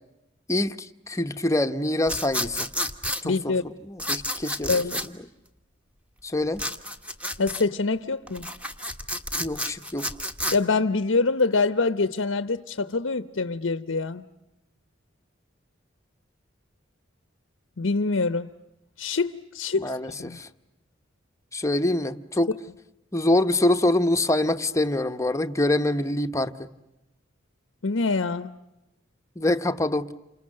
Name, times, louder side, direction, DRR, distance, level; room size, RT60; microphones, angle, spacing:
voice 1, 0.5-2.7 3.2-5.0 6.2-6.6 9.4-10.1 19.7-20.5 21.5-22.5 23.1-26.7 29.4-30.1, left 1 dB, 15° left, 0.9 m, -25 dB
sound 1, 2.1-3.2 4.0-5.1 6.6-7.6 8.3-10.6, equal, 5° right, 1.4 m, -30 dB
voice 2, 3.2-3.6 4.7-5.1 7.4-8.5 10.5-14.3 17.8-18.5 19.0-19.9 20.2-20.4 27.8-28.6, left 3 dB, 90° left, 0.9 m, -25 dB
29.5 x 27.0 x 6.5 m
head